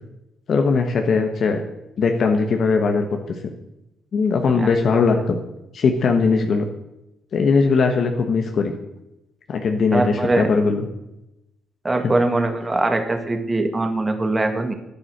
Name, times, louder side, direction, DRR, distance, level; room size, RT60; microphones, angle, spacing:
voice 1, 0.5-1.6 2.0-3.2 4.1-5.4 5.7-6.7 7.3-8.7 9.5-10.8 12.0-12.1, left 4 dB, 55° left, 4 dB, 1.4 m, -19 dB
voice 2, 9.9-10.5 11.8-14.7, right 2 dB, 20° right, 7 dB, 1.9 m, -22 dB
11.5 x 9.8 x 6.7 m, 0.90 s
cardioid pair, 90°, 0 cm